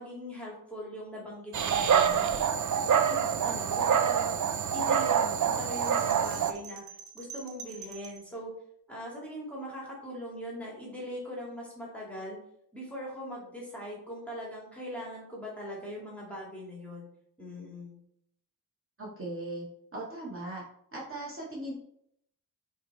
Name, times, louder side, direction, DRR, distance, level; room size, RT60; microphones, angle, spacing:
voice 1, 0.0-4.4 4.7-8.5 8.9-12.4 12.7-17.1 17.4-18.0, equal, 5° left, -5 dB, 2.2 m, -41 dB
Dog, 1.5-6.5, right 7 dB, 55° right, 0.5 m, -26 dB
sound 1, 5.8-8.3, right 6 dB, 70° right, 0.9 m, -47 dB
voice 2, 19.0-19.7 19.9-20.6 20.9-21.7, right 1 dB, 35° right, -5 dB, 2.0 m, -38 dB
6.9 x 3.4 x 4.2 m, 0.71 s
wide cardioid pair, 165°, 36 cm